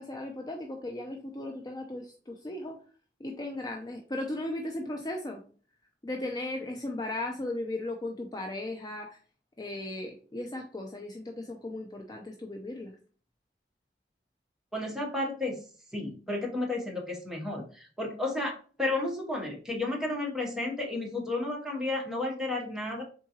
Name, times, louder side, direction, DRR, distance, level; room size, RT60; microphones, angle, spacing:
voice 1, 0.0-2.8 3.2-5.4 6.0-9.2 9.6-12.9, left 1 dB, 20° left, 2 dB, 0.4 m, -36 dB
voice 2, 14.7-15.6 15.9-23.0, left 2 dB, 5° right, -2 dB, 0.9 m, -32 dB
3.7 x 3.7 x 2.8 m, 0.41 s
head